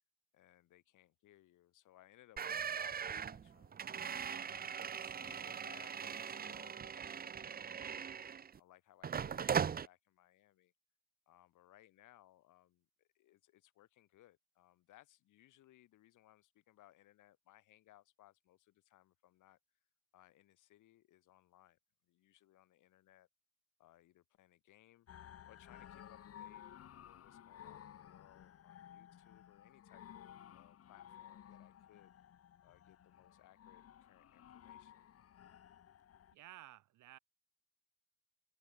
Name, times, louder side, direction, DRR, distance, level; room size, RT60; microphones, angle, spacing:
voice 1, 0.3-3.8 4.3-8.0 8.6-10.7 11.3-19.6 20.1-23.3 23.8-25.1 25.4-26.6 27.0-32.1 32.6-35.1, left 14 dB, 85° left, 3.2 m, -65 dB
sound 1, 2.4-8.6 9.0-9.9, right 7 dB, 30° right, 0.6 m, -40 dB
sound 2, 25.1-36.3, left 10 dB, 50° left, 1.1 m, -56 dB
voice 2, 36.3-37.2, right 14 dB, 80° right, 1.5 m, -55 dB
cardioid pair, 90°, 30 cm